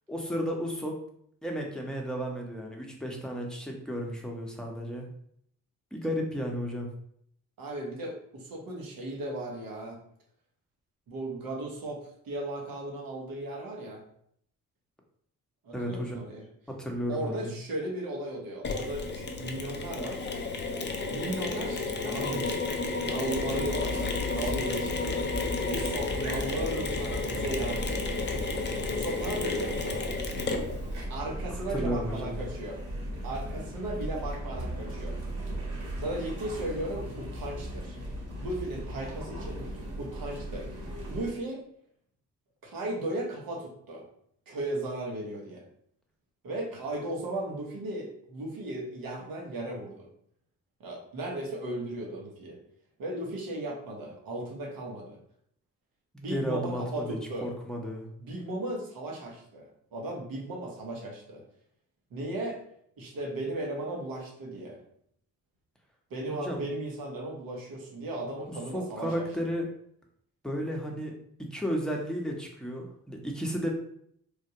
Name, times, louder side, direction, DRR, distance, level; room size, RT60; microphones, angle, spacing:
voice 1, 0.1-1.0 1.4-5.1 5.9-6.9 15.7-16.2 16.7-17.5 31.5-32.3 56.1-58.1 66.3-66.6 68.7-69.7 70.4-71.1 71.4-73.7, equal, ahead, 0 dB, 0.8 m, -33 dB
voice 2, 7.6-10.0 11.1-14.0 15.6-16.5 17.1-20.3 21.1-25.2 25.7-28.4 28.9-30.0 31.1-32.8 33.2-35.2 36.0-38.0 38.4-40.7 41.1-41.6 42.6-44.1 44.5-45.6 46.4-50.1 50.8-52.6 53.0-55.2 56.2-57.5 58.2-61.4 62.1-62.6 63.0-64.8 66.1-69.2, right 1 dB, 75° right, 0 dB, 1.0 m, -36 dB
Mechanisms, 18.6-31.0, left 3 dB, 30° left, 0.5 m, -32 dB
sound 1, 23.3-41.3, equal, 55° right, 1.4 m, -37 dB
3.4 x 2.1 x 2.8 m, 0.68 s
supercardioid pair, 55°, 35 cm